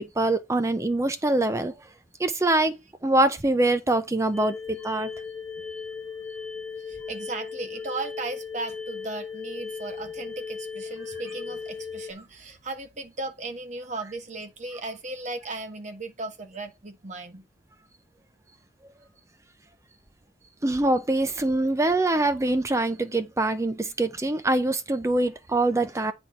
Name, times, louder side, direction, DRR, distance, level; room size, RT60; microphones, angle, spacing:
voice 1, 0.0-1.7 2.2-5.1 20.6-26.1, right 2 dB, 15° right, 0.5 m, -24 dB
sound 1, 4.3-12.1, left 5 dB, 5° left, 1.4 m, -37 dB
voice 2, 6.9-17.4, right 3 dB, 45° right, 1.2 m, -36 dB
9.1 x 4.2 x 4.6 m
head